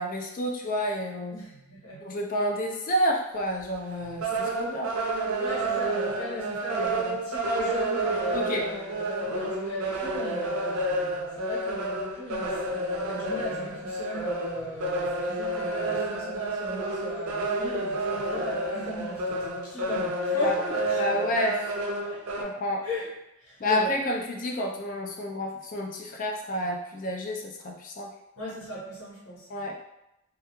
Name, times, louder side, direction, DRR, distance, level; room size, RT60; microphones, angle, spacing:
voice 1, 0.0-1.4 2.0-5.0 8.3-8.7 20.4-20.6 21.0-21.7 22.4-22.9 23.6-28.1 29.5-29.7, left 1 dB, 40° left, 1 dB, 0.3 m, -29 dB
voice 2, 1.3-2.0 5.4-10.9 11.4-21.2 22.1-22.5 22.8-23.1 23.4-23.9 28.4-29.5, equal, 80° left, -6 dB, 1.0 m, -37 dB
sound 1, 3.6-3.7 4.0-22.4, right 1 dB, 85° right, 0.4 m, -30 dB
2.3 x 2.2 x 2.9 m, 0.89 s
head